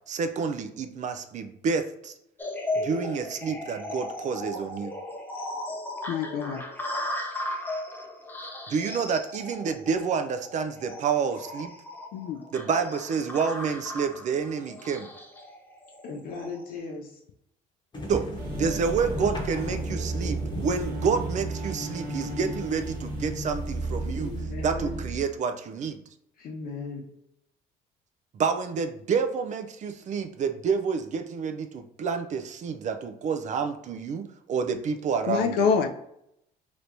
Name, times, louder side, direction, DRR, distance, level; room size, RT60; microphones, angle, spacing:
voice 1, 0.1-2.1 2.8-4.9 8.7-11.7 12.5-15.1 18.1-18.3 18.6-24.3 24.6-26.0 28.3-35.7, right 5 dB, 45° right, 8 dB, 0.4 m, -29 dB
sound 1, 2.4-16.6, left 1 dB, 10° left, 0.6 m, -36 dB
voice 2, 6.1-6.6 12.1-12.4 35.3-35.9, left 6 dB, 75° left, 5 dB, 0.4 m, -25 dB
voice 3, 16.0-17.2 24.1-25.0 26.4-27.0, left 3 dB, 60° left, 1 dB, 1.0 m, -37 dB
sound 2, 17.9-24.4, left 1 dB, 25° left, 1.0 m, -38 dB
sound 3, 18.4-25.2, right 2 dB, 65° right, 0.9 m, -33 dB
3.3 x 3.0 x 2.6 m, 0.78 s
cardioid pair, 110°, 17 cm